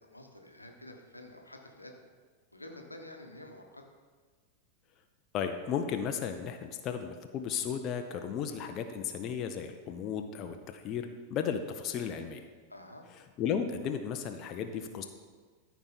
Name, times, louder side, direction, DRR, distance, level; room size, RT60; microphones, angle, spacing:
voice 1, 0.1-2.0 2.5-3.8 12.7-13.1, left 1 dB, 85° left, 3 dB, 1.0 m, -49 dB
voice 2, 5.3-12.4 13.4-15.1, left 7 dB, 35° left, 6 dB, 0.6 m, -34 dB
13.5 x 4.6 x 4.2 m, 1.5 s
figure-of-eight pair, 90°, 0 cm